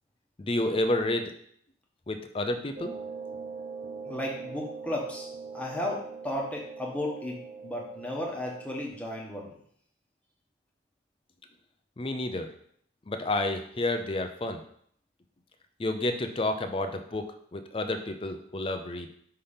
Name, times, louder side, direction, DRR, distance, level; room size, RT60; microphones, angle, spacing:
voice 1, 0.4-1.3 2.1-2.9 12.0-12.5 13.1-14.6 15.8-17.2 17.5-19.1, left 2 dB, 30° left, 6 dB, 0.5 m, -30 dB
sound 1, 2.8-8.9, right 5 dB, 40° right, 0.5 m, -41 dB
voice 2, 4.0-5.3 5.5-9.5, left 1 dB, 5° left, -2 dB, 1.1 m, -34 dB
5.6 x 3.4 x 5.6 m, 0.66 s
head